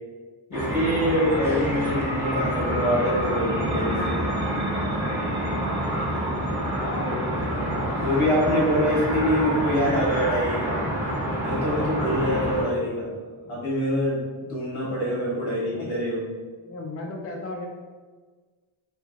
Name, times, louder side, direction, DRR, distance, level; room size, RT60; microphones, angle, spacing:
voice 1, 0.5-4.3 8.0-10.8 11.4-13.1 13.4-16.2, equal, 90° left, -5 dB, 1.2 m, -25 dB
sound 1, 0.5-12.6, equal, 5° right, 0.9 m, -28 dB
sound 2, 1.7-13.0, right 1 dB, 40° right, 0.4 m, -35 dB
voice 2, 6.8-8.0 15.7-15.9 16.6-17.7, left 2 dB, 30° left, 0 dB, 0.4 m, -35 dB
3.2 x 2.6 x 2.3 m, 1.4 s
cardioid pair, 60°, 48 cm